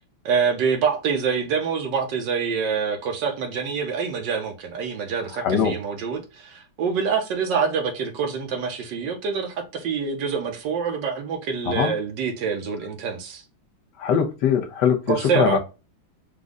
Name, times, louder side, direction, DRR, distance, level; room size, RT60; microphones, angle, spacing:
voice 1, 0.2-13.4 15.1-15.6, right 6 dB, 65° right, 1.4 m, -26 dB
voice 2, 5.4-5.8 11.7-11.9 14.0-15.0 15.3-15.6, left 7 dB, 65° left, 1.2 m, -21 dB
5.2 x 2.3 x 3.6 m
omnidirectional pair, 2.4 m